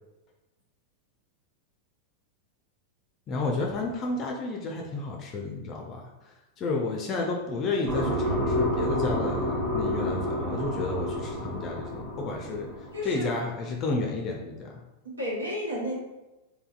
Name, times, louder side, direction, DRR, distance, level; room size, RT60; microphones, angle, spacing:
voice 1, 3.3-12.7 13.0-14.8, left 3 dB, 30° left, 1 dB, 0.4 m, -31 dB
sound 1, 7.9-13.3, equal, 30° right, 0.8 m, -29 dB
voice 2, 12.9-13.3 15.0-15.9, left 1 dB, 75° right, -5 dB, 1.1 m, -32 dB
3.8 x 2.6 x 2.4 m, 1.0 s
figure-of-eight pair, 90°, 0 cm